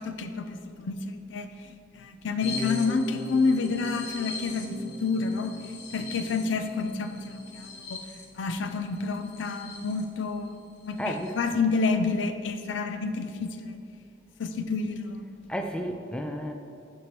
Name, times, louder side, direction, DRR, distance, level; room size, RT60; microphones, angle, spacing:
voice 1, 0.0-1.5 2.0-5.5 5.9-8.0 8.3-10.5 10.8-13.8 14.4-15.2, left 4 dB, 80° left, 8 dB, 0.5 m, -29 dB
sound 1, 2.4-10.0 10.5-10.6 10.8-11.3, left 2 dB, 60° left, 0.8 m, -39 dB
voice 2, 11.0-11.4 15.5-16.5, equal, 5° left, 4 dB, 0.3 m, -32 dB
11.0 x 4.5 x 3.1 m, 2.4 s
head